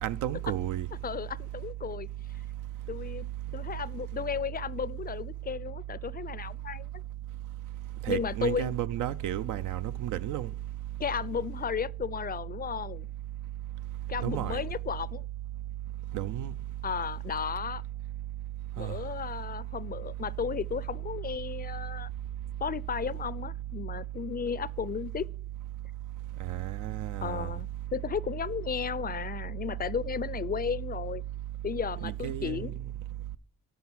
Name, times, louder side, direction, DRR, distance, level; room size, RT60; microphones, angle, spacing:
voice 1, 0.0-0.9 8.0-10.5 14.2-14.6 16.1-16.5 18.8-19.0 26.4-27.5 32.0-32.7, right 12 dB, 85° right, 0.6 m, -32 dB
voice 2, 1.0-2.1 2.9-3.3 3.5-7.0 8.1-8.7 11.0-13.1 14.1-15.2 16.8-17.8 18.8-22.1 22.6-25.3 27.2-31.2 31.6-32.8, left 7 dB, 30° left, 0.4 m, -34 dB
13.0 x 5.0 x 6.2 m
cardioid pair, 90°, 30 cm